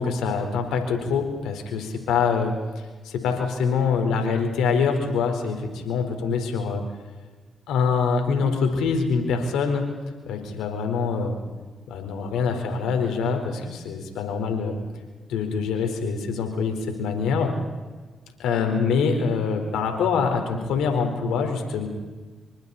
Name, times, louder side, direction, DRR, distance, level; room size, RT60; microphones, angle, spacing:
voice 1, 0.0-2.5 3.0-6.8 7.7-9.9 10.3-11.4 11.9-14.8 15.3-17.5 18.4-21.9, left 5 dB, 80° left, 4 dB, 4.3 m, -24 dB
27.0 x 24.5 x 4.3 m, 1.3 s
supercardioid pair, 45°, 0 cm